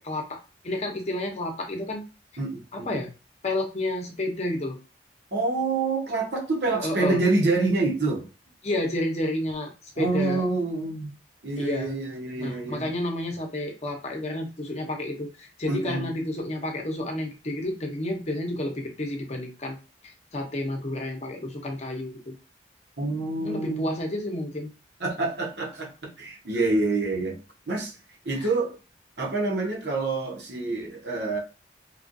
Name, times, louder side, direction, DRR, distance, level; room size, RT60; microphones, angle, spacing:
voice 1, 0.0-2.0 2.7-3.1 3.4-4.8 6.8-7.2 8.6-10.5 11.6-11.9 12.4-19.8 20.3-22.3 23.1-24.7, left 1 dB, 40° left, 0.7 m, -30 dB
voice 2, 2.4-2.9 5.3-8.3 10.0-11.1 11.4-12.9 15.7-16.1 23.0-23.9 25.0-28.0 28.2-28.8 29.2-31.4, right 3 dB, 70° right, 1.1 m, -27 dB
3.2 x 2.4 x 2.6 m
head